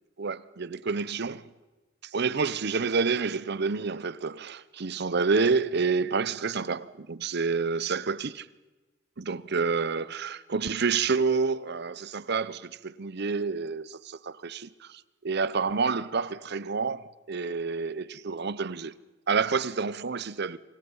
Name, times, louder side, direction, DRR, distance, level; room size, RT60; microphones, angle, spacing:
voice 1, 0.2-1.4 2.1-8.5 9.2-18.9 19.3-20.6, right 4 dB, 55° right, 0.8 m, -28 dB
27.5 x 25.5 x 5.6 m
head